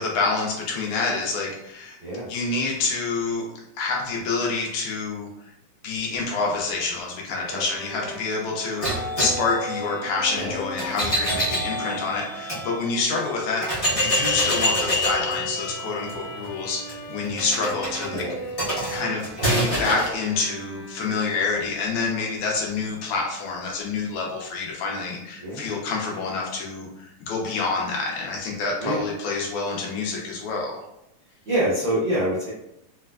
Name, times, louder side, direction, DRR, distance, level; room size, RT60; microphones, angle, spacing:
voice 1, 0.0-2.0 2.3-3.5 3.8-5.3 5.8-18.3 18.9-30.8, left 4 dB, 80° left, -1 dB, 2.1 m, -27 dB
Bowed string instrument, 7.3-21.8, right 1 dB, 65° left, 1.7 m, -39 dB
sound 1, 8.8-12.6 13.2-13.3 13.6-20.1, equal, 40° left, 0.8 m, -26 dB
voice 2, 25.4-25.7 28.8-29.0 31.5-32.5, right 1 dB, 85° right, -7 dB, 1.0 m, -26 dB
4.8 x 2.2 x 2.3 m, 0.84 s
omnidirectional pair, 3.3 m